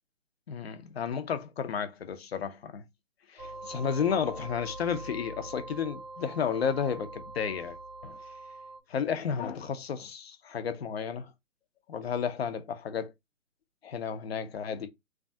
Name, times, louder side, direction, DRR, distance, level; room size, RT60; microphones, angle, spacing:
voice 1, 0.5-2.8 3.3-7.8 8.0-8.2 8.9-11.3 11.9-13.1 13.8-14.9, left 7 dB, 50° left, 0.6 m, -32 dB
sound 1, 3.4-8.8, right 2 dB, 15° right, 0.7 m, -43 dB
3.2 x 2.3 x 2.6 m
hypercardioid pair, 145°, 41 cm